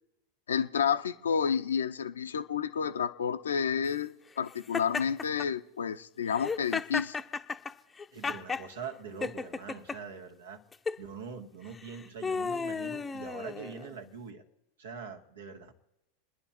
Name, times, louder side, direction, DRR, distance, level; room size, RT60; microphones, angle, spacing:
voice 1, 0.5-7.2, left 7 dB, 80° left, 8 dB, 0.9 m, -30 dB
Laughter, 4.7-5.5 6.3-8.7 9.2-10.0 10.7-11.0 11.7-14.0, left 5 dB, 15° left, 0.8 m, -34 dB
voice 2, 8.1-10.6 11.0-14.4 14.8-15.7, right 6 dB, 75° right, 5 dB, 1.9 m, -43 dB
28.0 x 10.5 x 4.4 m, 0.95 s
hypercardioid pair, 90°, 0 cm